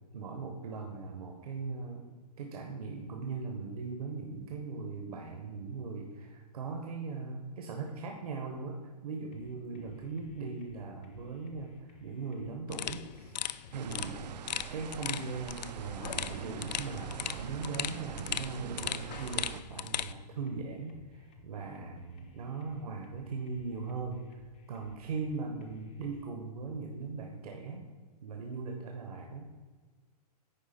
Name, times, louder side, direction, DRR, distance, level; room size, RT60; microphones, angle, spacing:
voice 1, 0.1-2.0 2.4-13.3 13.7-14.2 14.7-27.9 28.2-29.5, right 4 dB, 65° right, 2 dB, 1.1 m, -39 dB
sound 1, 9.3-26.3, left 2 dB, 15° left, 0.3 m, -58 dB
sound 2, 12.7-20.1, left 10 dB, 85° left, 0.4 m, -38 dB
sound 3, 13.7-19.6, right 9 dB, 80° right, 0.4 m, -43 dB
9.5 x 3.5 x 5.7 m, 1.4 s
hypercardioid pair, 175°, 21 cm